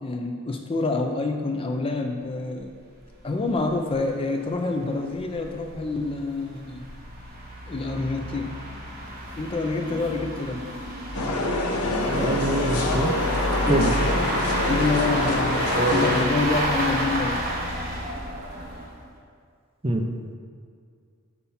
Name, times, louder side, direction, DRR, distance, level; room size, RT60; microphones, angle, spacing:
voice 1, 0.0-2.7 3.2-6.9 7.7-8.5 9.4-10.6 13.6-14.0 14.7-17.4, left 3 dB, 25° left, 3 dB, 0.4 m, -27 dB
sound 1, 2.6-2.7 3.0-3.1 3.5-3.6 3.9-4.0 4.6-19.0, equal, 40° right, 1.4 m, -29 dB
sound 2, 11.1-16.2, left 2 dB, 85° left, 0.8 m, -26 dB
voice 2, 12.1-13.1 13.7-13.9 15.7-16.1 19.8-20.0, right 1 dB, 25° right, 3 dB, 0.5 m, -24 dB
6.8 x 5.6 x 4.2 m, 2.2 s
head